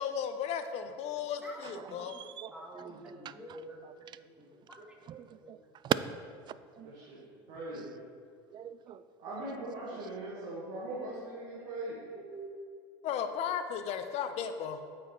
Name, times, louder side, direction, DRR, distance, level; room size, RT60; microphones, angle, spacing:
voice 1, 0.0-2.1 13.0-14.8, left 8 dB, 50° left, 8 dB, 0.7 m, -35 dB
voice 2, 1.9-2.9 3.2-3.3 3.8-3.9 5.1-5.6 5.8-5.9 6.8-6.9 8.5-9.0, right 11 dB, 35° right, 15 dB, 0.3 m, -37 dB
voice 3, 2.5-3.8 4.4-4.8 5.4-5.6 12.1-12.5, right 1 dB, 10° right, -2 dB, 1.8 m, -47 dB
voice 4, 6.8-8.0 9.2-12.0, right 1 dB, 65° right, -6 dB, 1.9 m, -41 dB
8.7 x 5.0 x 4.5 m, 2.2 s
hypercardioid pair, 95°, 13 cm